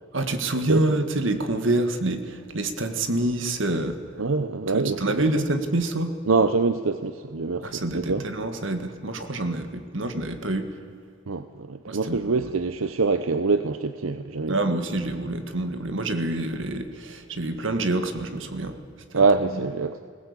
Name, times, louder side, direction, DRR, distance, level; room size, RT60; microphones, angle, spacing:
voice 1, 0.1-4.0 4.7-6.2 7.6-10.7 11.9-12.5 14.5-18.8 19.1-19.3 19.6-19.7, right 2 dB, 70° right, 8 dB, 1.8 m, -27 dB
voice 2, 4.2-5.4 6.3-8.2 11.3-14.6 19.1-20.0, right 4 dB, 90° right, 11 dB, 0.7 m, -24 dB
20.5 x 17.0 x 8.3 m, 2.2 s
head